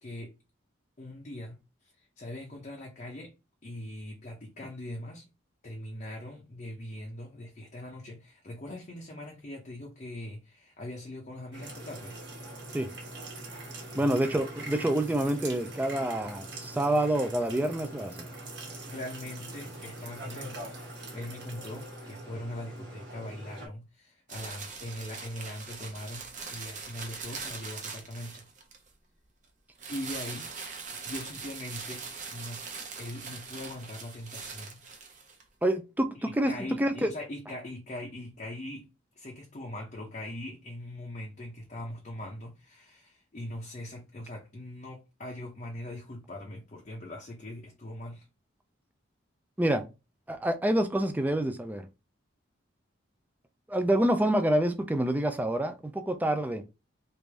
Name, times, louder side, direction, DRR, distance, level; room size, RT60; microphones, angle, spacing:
voice 1, 0.0-0.3 1.0-1.6 1.8-3.3 3.6-5.3 5.6-12.2 13.9-14.2 18.9-26.2 26.5-28.5 29.9-30.5 31.0-32.6 33.0-34.8 36.1-38.9 39.2-48.3, left 1 dB, 40° left, 0.6 m, -41 dB
sound 1, 11.5-23.7, right 2 dB, 60° right, 1.1 m, -42 dB
voice 2, 13.9-18.3 35.6-36.1 36.4-36.5 36.8-37.1 49.6-49.8 50.3-51.9 53.7-56.6, right 1 dB, 10° right, 0.3 m, -27 dB
sound 2, 24.3-28.9 29.8-35.4, right 5 dB, 40° right, 0.7 m, -41 dB
3.3 x 2.6 x 3.2 m
head